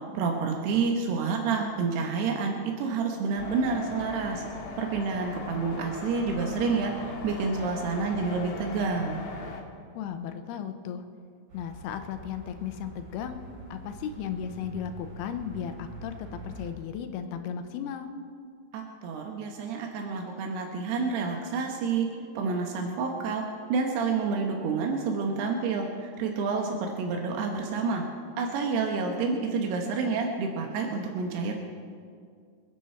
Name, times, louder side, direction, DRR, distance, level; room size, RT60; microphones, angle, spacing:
voice 1, 0.1-4.4 4.8-9.2 18.7-22.1 22.4-23.4 23.7-28.0 28.4-31.5, right 4 dB, 90° right, 2 dB, 3.2 m, -29 dB
sound 1, 3.4-9.6, left 4 dB, 55° left, 2.6 m, -39 dB
voice 2, 9.9-11.0 11.5-13.4 13.7-18.1, left 8 dB, 85° left, 8 dB, 2.8 m, -35 dB
sound 2, 11.5-16.7, right 2 dB, 50° right, 4.9 m, -45 dB
27.0 x 9.9 x 4.4 m, 2.2 s
omnidirectional pair, 4.5 m